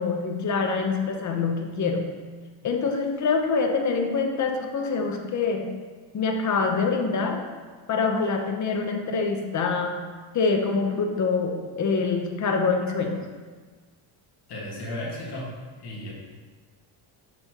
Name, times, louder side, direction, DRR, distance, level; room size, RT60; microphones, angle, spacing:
voice 1, 0.0-2.1 2.6-5.7 6.1-7.4 7.9-10.0 10.3-13.3, left 4 dB, 35° left, 3 dB, 0.8 m, -25 dB
voice 2, 14.5-16.1, left 1 dB, 50° left, -4 dB, 1.7 m, -35 dB
7.8 x 4.2 x 2.9 m, 1.4 s
cardioid pair, 115°, 49 cm